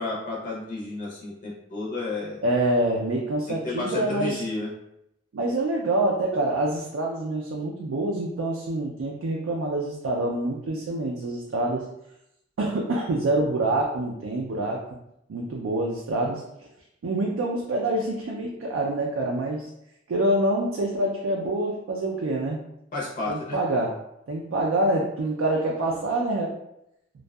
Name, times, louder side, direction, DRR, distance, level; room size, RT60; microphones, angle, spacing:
voice 1, 0.0-2.4 3.6-4.7 22.9-23.6, left 2 dB, 40° left, -4 dB, 0.6 m, -31 dB
voice 2, 2.4-4.4 5.3-11.9 12.6-14.8 15.3-16.4 17.0-19.7 20.1-22.6 23.3-24.0 24.3-26.5, right 1 dB, 75° right, -1 dB, 0.4 m, -26 dB
2.6 x 2.2 x 2.2 m, 0.80 s
head